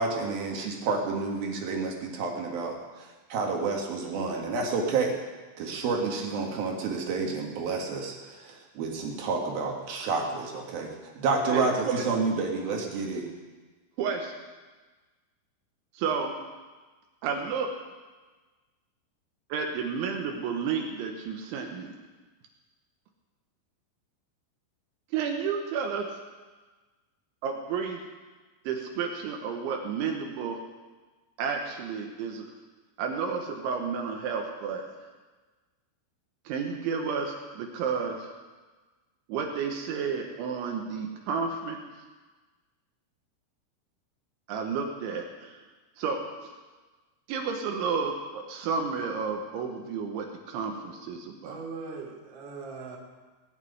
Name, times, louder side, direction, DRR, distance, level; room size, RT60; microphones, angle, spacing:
voice 1, 0.0-5.2 5.6-13.3, right 4 dB, 60° right, 3.0 m, -30 dB
voice 2, 11.5-12.0 14.0-14.3 15.9-16.3 17.2-17.7 19.5-21.9 25.1-26.1 27.4-28.0 28.6-30.6 31.4-32.5 33.0-34.8 36.5-38.3 39.3-41.8 44.5-45.6 46.0-46.5 47.3-51.6, right 5 dB, 75° right, 3.3 m, -31 dB
voice 3, 51.4-53.0, right 4 dB, 35° right, 2.2 m, -40 dB
20.0 x 7.5 x 9.4 m
omnidirectional pair, 5.8 m